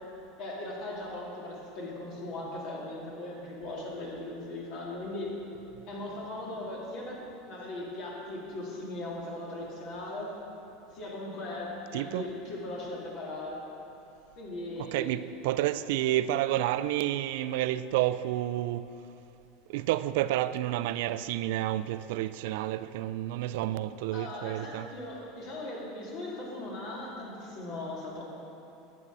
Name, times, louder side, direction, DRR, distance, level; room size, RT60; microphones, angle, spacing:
voice 1, 0.4-5.4 5.9-10.3 10.9-13.6 14.4-15.2 24.1-28.2, left 2 dB, 60° left, 2.5 m, -38 dB
voice 2, 11.9-12.3 14.8-18.9 19.7-24.9, right 14 dB, 70° right, 0.3 m, -30 dB
10.5 x 8.7 x 4.0 m
hypercardioid pair, 95°, 0 cm